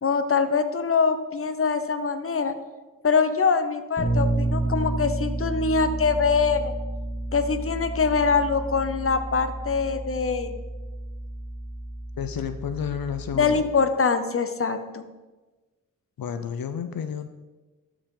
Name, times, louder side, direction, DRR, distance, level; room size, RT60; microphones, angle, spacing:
voice 1, 0.0-2.5 3.0-6.7 7.3-10.6 13.3-15.0, left 5 dB, 40° left, 9 dB, 0.7 m, -23 dB
Bass guitar, 4.0-13.8, right 1 dB, 15° left, 2.3 m, -31 dB
voice 2, 12.2-13.6 16.2-17.3, left 8 dB, 85° left, 9 dB, 0.5 m, -31 dB
13.0 x 4.9 x 3.8 m, 1.2 s
wide cardioid pair, 65°, 34 cm